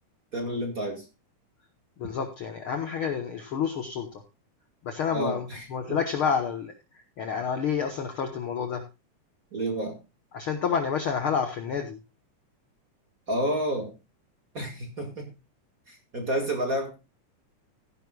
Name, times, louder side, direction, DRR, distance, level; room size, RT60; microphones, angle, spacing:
voice 1, 0.3-1.0 5.1-6.0 9.5-10.0 13.3-13.9 14.5-15.3 15.9-17.0, right 1 dB, 35° right, 4 dB, 1.8 m, -30 dB
voice 2, 2.0-4.1 4.8-6.7 7.2-8.8 10.3-12.0, left 6 dB, 60° left, 6 dB, 1.4 m, -29 dB
16.0 x 11.0 x 2.3 m, 0.27 s
omnidirectional pair, 3.6 m